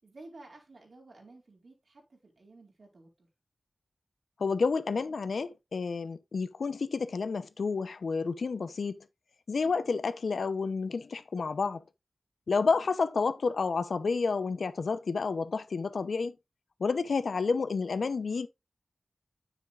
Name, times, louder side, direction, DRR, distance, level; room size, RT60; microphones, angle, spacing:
voice 1, 0.0-3.3 9.6-9.9 12.6-12.9, right 2 dB, 65° right, 4.3 m, -54 dB
voice 2, 4.4-9.0 9.5-11.8 12.5-16.3 16.8-18.5, left 4 dB, 90° left, 0.8 m, -30 dB
9.8 x 7.3 x 2.5 m
wide cardioid pair, 80°, 0 cm